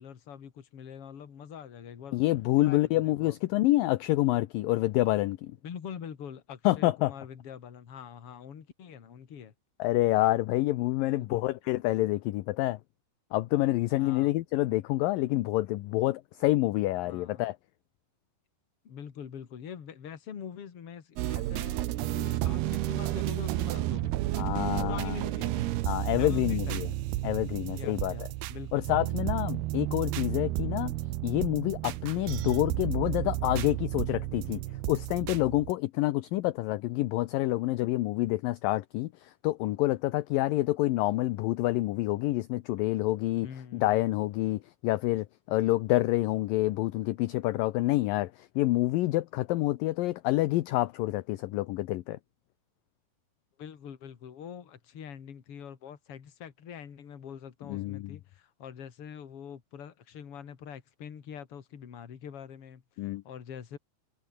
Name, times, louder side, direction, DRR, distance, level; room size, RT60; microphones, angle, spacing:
voice 1, 0.0-2.2 2.6-3.4 5.6-9.5 11.1-11.4 14.0-14.3 17.0-17.5 18.8-24.1 24.8-25.8 26.2-26.8 27.7-28.9 43.4-44.0 53.6-63.8, left 8 dB, 40° left, 2.7 m, -44 dB
voice 2, 2.1-5.5 6.7-7.1 9.8-12.8 13.3-17.6 24.4-25.2 25.9-26.9 27.2-28.3 28.7-30.9 31.2-34.6 34.9-43.5 43.7-52.2 57.7-58.1 63.0-63.2, left 17 dB, 75° left, 2.2 m, -27 dB
sound 1, 21.2-35.7, right 15 dB, 80° right, 3.0 m, -32 dB
omnidirectional pair, 4.6 m